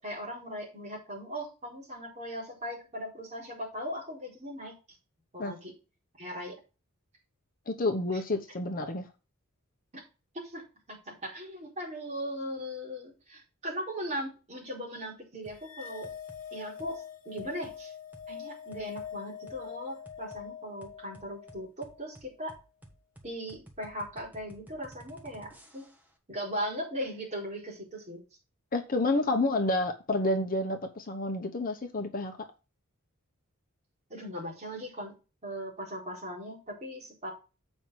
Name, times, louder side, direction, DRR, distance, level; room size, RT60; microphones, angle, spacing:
voice 1, 0.0-4.8 5.3-5.7 6.2-6.6 8.1-8.2 9.9-10.0 10.3-16.1 16.5-17.9 18.3-22.5 23.2-25.9 26.3-28.2 34.1-35.1 35.4-37.3, equal, 30° right, 4.2 m, -39 dB
voice 2, 7.7-9.1 28.7-32.4, left 2 dB, 40° left, 0.9 m, -29 dB
sound 1, 15.4-15.6 16.0-16.4 16.8-17.0 17.4-17.8 18.1-18.3 18.7-19.1 19.5-19.6 20.0-20.4 20.8-26.1, right 1 dB, 10° right, 1.5 m, -53 dB
sound 2, 15.6-22.1, left 8 dB, 65° left, 1.0 m, -44 dB
7.9 x 5.4 x 4.6 m
head